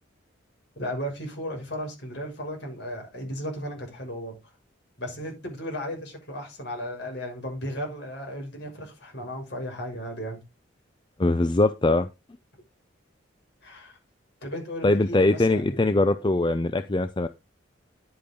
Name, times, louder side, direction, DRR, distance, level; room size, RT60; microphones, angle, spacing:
voice 1, 0.8-4.4 5.0-10.4 13.6-14.0 14.4-16.0, equal, 55° left, 6.4 m, -35 dB
voice 2, 11.2-12.1 14.8-17.3, left 2 dB, 25° left, 0.5 m, -22 dB
10.5 x 8.6 x 3.8 m
head